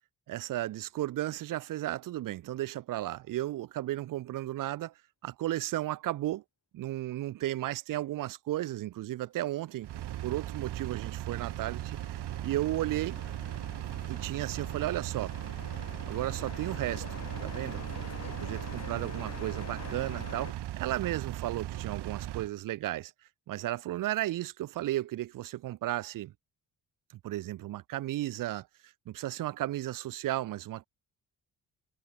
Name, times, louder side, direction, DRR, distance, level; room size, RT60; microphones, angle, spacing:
voice 1, 0.3-4.9 5.2-6.4 6.7-9.9 10.2-13.2 14.1-15.4 16.1-17.8 18.4-23.1 23.5-26.3 27.2-30.9, right 14 dB, 55° right, 0.5 m, -34 dB
sound 1, 9.6-20.5, left 7 dB, 40° left, 1.4 m, -47 dB
Engine, 9.8-22.5, right 13 dB, 75° right, 1.3 m, -38 dB
cardioid pair, 105°, 41 cm